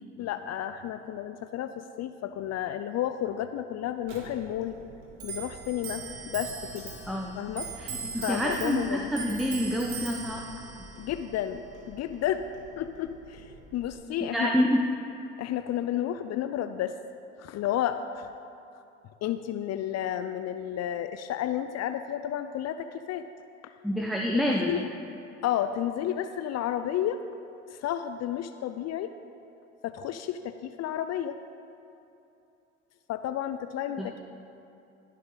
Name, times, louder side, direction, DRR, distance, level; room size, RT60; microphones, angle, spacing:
voice 1, 0.2-4.8 5.2-7.0 7.4-7.7 8.2-9.1 11.0-12.5 12.8-14.5 15.4-17.0 17.4-18.3 19.2-23.3 23.6-23.7 24.6-24.9 25.4-27.2 27.7-29.1 29.8-31.4 33.1-34.2, left 11 dB, 45° left, 10 dB, 0.5 m, -32 dB
Clock, 4.0-13.9, right 5 dB, 75° right, 1.8 m, -41 dB
voice 2, 7.1-7.4 7.8-10.5 14.3-14.9 23.8-24.8 34.0-34.1, equal, ahead, 0 dB, 0.9 m, -28 dB
18.5 x 6.6 x 4.0 m, 2.8 s
hypercardioid pair, 65°, 36 cm